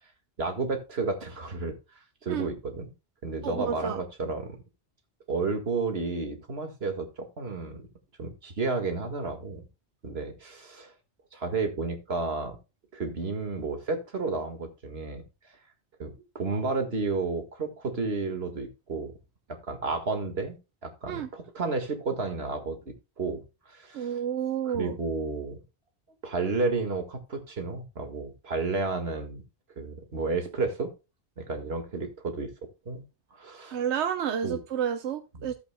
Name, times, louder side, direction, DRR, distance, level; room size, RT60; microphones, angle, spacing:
voice 1, 0.4-1.7 2.2-2.9 3.2-4.6 5.3-7.9 8.2-9.7 10.0-10.9 11.3-12.6 12.9-15.2 16.0-19.1 19.5-20.6 20.8-24.2 24.7-25.6 26.2-29.4 29.8-30.9 31.4-32.5 32.9-33.0 33.4-33.8 34.4-34.6 35.3-35.5, right 3 dB, 65° right, 5 dB, 2.0 m, -32 dB
voice 2, 3.4-4.0 21.1-21.3 23.9-25.0 33.7-35.5, right 8 dB, 90° right, 7 dB, 1.0 m, -30 dB
14.5 x 8.0 x 2.2 m, 0.28 s
omnidirectional pair, 1.1 m